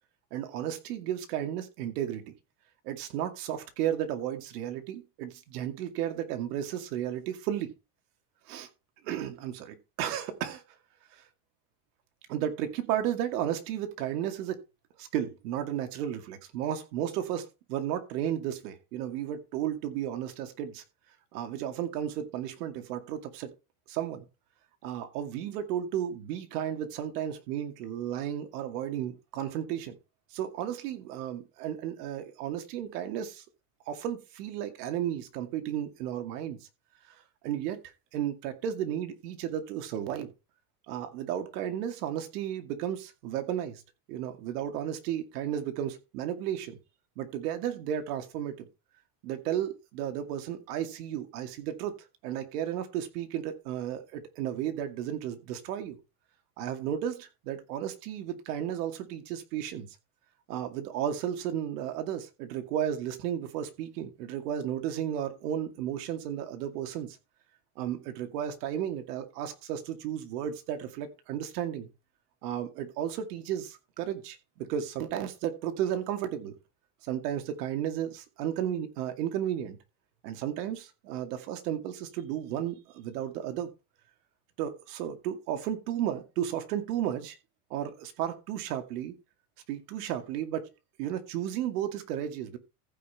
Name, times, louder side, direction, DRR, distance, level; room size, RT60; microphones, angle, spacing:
voice 1, 0.3-2.3 2.8-7.7 8.5-8.7 9.0-10.6 11.1-11.2 12.3-14.6 15.0-20.8 21.3-23.5 23.9-24.2 24.8-30.0 30.3-33.4 33.9-36.6 37.1-37.2 37.4-37.8 38.1-40.3 40.9-43.8 44.1-46.8 47.2-48.7 49.2-52.0 52.2-56.0 56.6-59.9 60.5-67.2 67.8-71.9 72.4-76.5 77.0-79.8 80.2-83.7 84.6-87.4 87.7-89.1 89.7-90.7 91.0-92.6, right 10 dB, 80° right, 2.4 m, -33 dB
15.0 x 5.6 x 4.3 m
supercardioid pair, 125°, 47 cm